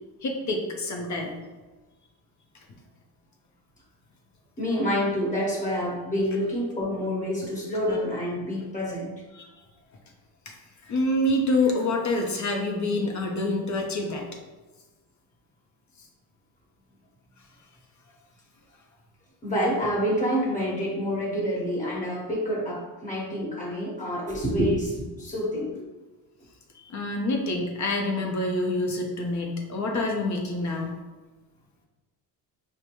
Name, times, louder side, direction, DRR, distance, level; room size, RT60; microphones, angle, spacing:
voice 1, 0.2-1.3 9.3-9.5 10.5-10.6 10.8-14.2 26.8-30.9, left 2 dB, 45° left, 1 dB, 0.7 m, -27 dB
voice 2, 4.6-9.1 19.4-25.8, equal, 20° left, -5 dB, 1.3 m, -27 dB
4.9 x 2.2 x 3.0 m, 1.2 s
cardioid pair, 115°, 40 cm